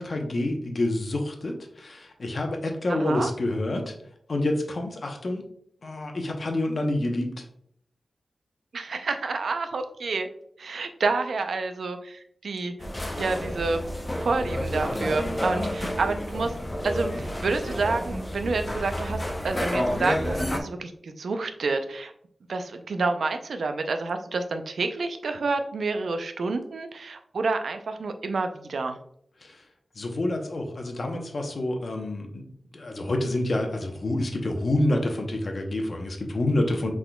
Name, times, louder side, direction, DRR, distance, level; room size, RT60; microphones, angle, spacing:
voice 1, 0.0-3.9 4.3-5.4 5.8-7.5 29.4-29.6 30.0-32.4 32.7-36.9, left 1 dB, 50° left, 3 dB, 0.8 m, -28 dB
voice 2, 2.9-3.3 8.7-10.3 10.6-12.7 13.2-13.8 14.2-16.5 16.8-22.1 22.5-29.0, right 3 dB, 80° right, 7 dB, 0.5 m, -29 dB
sound 1, 12.8-20.6, equal, 20° left, 0.7 m, -30 dB
6.0 x 3.6 x 2.2 m, 0.69 s
wide cardioid pair, 100°, 0 cm